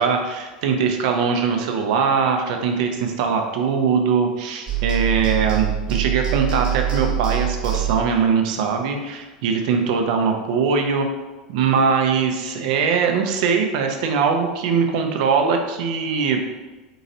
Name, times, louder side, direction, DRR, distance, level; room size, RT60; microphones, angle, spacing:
voice 1, 0.0-11.1 11.5-16.4, right 5 dB, 65° right, 4 dB, 0.6 m, -21 dB
sound 1, 4.7-8.2, right 11 dB, 25° right, 1.2 m, -24 dB
3.9 x 3.9 x 2.7 m, 1.2 s
hypercardioid pair, 95°, 4 cm